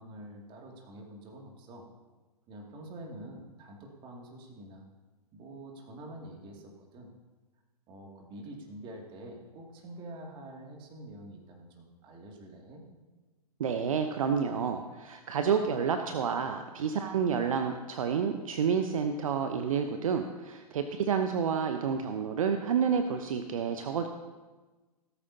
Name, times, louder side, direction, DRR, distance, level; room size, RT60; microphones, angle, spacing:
voice 1, 0.0-1.9 2.5-4.8 5.3-7.1 7.9-12.8, right 1 dB, 25° right, 0 dB, 2.4 m, -46 dB
voice 2, 13.6-24.1, right 6 dB, 55° right, 7 dB, 0.9 m, -29 dB
17.0 x 13.5 x 2.8 m, 1.2 s
figure-of-eight pair, 115°, 20 cm